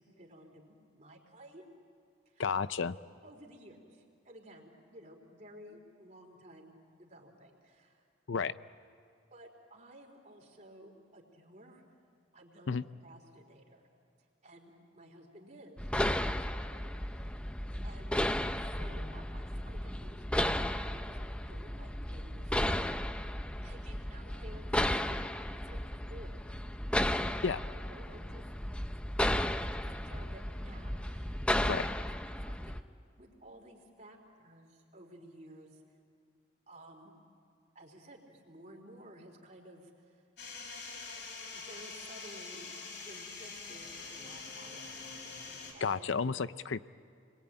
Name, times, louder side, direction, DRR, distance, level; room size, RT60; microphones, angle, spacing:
voice 1, 0.0-1.6 2.3-2.4 3.2-8.1 9.3-11.8 12.3-12.8 13.0-13.9 14.4-17.4 17.8-18.2 18.6-21.2 21.5-23.0 23.6-25.2 25.6-26.6 26.9-28.4 28.8-29.0 29.3-31.7 32.4-32.8 33.2-35.8 36.7-37.1 37.7-40.2 41.1-41.2 41.5-42.8 43.0-45.0 45.7-46.3, right 1 dB, 40° right, 1 dB, 3.9 m, -54 dB
voice 2, 2.4-3.0 8.3-8.6 12.7-12.8 27.4-27.6 31.7-31.8 45.8-46.9, left 5 dB, 85° left, 15 dB, 0.6 m, -32 dB
sound 1, 15.8-32.8, left 1 dB, 5° left, 0.6 m, -34 dB
sound 2, 40.4-45.7, left 4 dB, 65° left, 5.7 m, -45 dB
29.5 x 22.0 x 9.0 m, 2.4 s
head